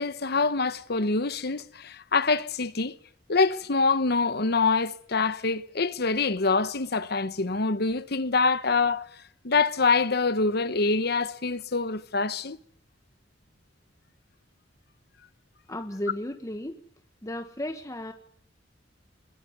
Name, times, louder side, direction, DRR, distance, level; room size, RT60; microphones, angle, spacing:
voice 1, 0.0-3.0 3.3-9.1 9.4-12.6, left 4 dB, 60° left, 1.1 m, -25 dB
voice 2, 15.7-16.8 17.2-18.1, left 1 dB, 20° left, 1.3 m, -34 dB
23.5 x 22.0 x 9.5 m
head